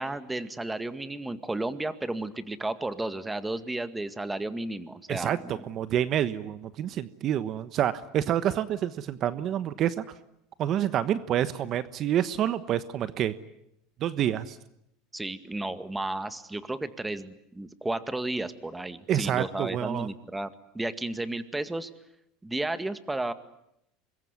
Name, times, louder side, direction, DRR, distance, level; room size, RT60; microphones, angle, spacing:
voice 1, 0.0-5.6 15.1-21.9 22.4-23.3, right 2 dB, 10° right, 11 dB, 1.9 m, -33 dB
voice 2, 5.1-10.0 10.6-13.3 14.0-14.6 19.1-20.1, right 11 dB, 45° right, 13 dB, 1.2 m, -28 dB
26.0 x 22.0 x 9.7 m, 0.79 s
supercardioid pair, 105°, 0 cm